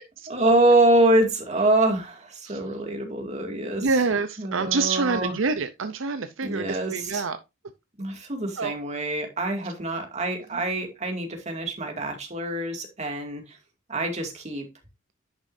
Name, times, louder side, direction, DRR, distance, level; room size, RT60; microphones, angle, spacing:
voice 1, 0.3-4.0 4.4-5.3 6.4-7.2 8.0-13.6 13.9-14.7, right 2 dB, 35° right, 2.3 m, -25 dB
voice 2, 3.8-7.4 8.6-8.7 10.5-10.6, right 4 dB, 70° right, 0.7 m, -26 dB
10.5 x 6.2 x 2.7 m
head